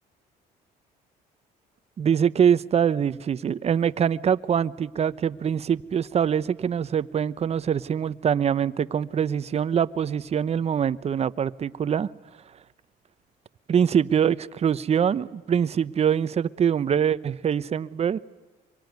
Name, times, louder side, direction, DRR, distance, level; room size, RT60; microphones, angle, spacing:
voice 1, 2.0-12.1 13.7-18.2, right 8 dB, 40° right, 0.9 m, -24 dB
25.5 x 23.5 x 9.4 m
cardioid pair, 110°, 17 cm